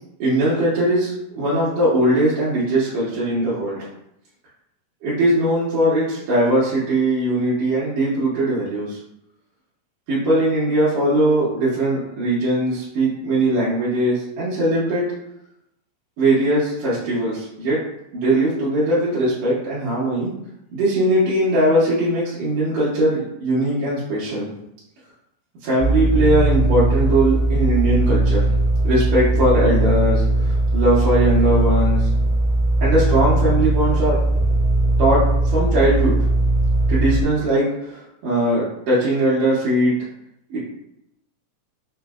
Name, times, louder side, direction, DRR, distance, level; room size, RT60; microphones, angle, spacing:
voice 1, 0.2-3.9 5.0-9.0 10.1-15.0 16.2-17.8 18.1-20.3 20.7-24.5 25.6-28.5 28.8-32.1 32.8-34.2 35.0-36.1 36.9-39.9 40.5-40.6, right 1 dB, 70° right, -9 dB, 2.1 m, -20 dB
sound 1, 25.8-37.2, right 2 dB, 90° right, 2.1 m, -19 dB
4.9 x 2.5 x 2.3 m, 0.80 s
omnidirectional pair, 3.5 m